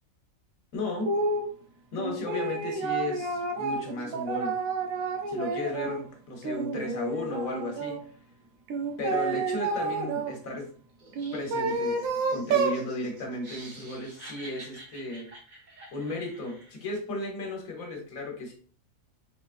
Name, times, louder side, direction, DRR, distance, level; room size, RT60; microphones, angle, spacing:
voice 1, 0.7-1.1 1.9-4.6 5.3-8.0 9.0-10.7 11.3-12.0 12.3-15.3 15.9-18.5, left 2 dB, 80° left, 2 dB, 1.5 m, -34 dB
sound 1, 1.1-1.5 2.0-6.0 6.4-8.0 8.7-10.3 11.1-12.8, right 3 dB, 80° right, 1.1 m, -30 dB
Laughter, 11.0-16.8, right 1 dB, 35° right, 1.1 m, -49 dB
3.9 x 3.7 x 2.4 m, 0.43 s
omnidirectional pair, 1.4 m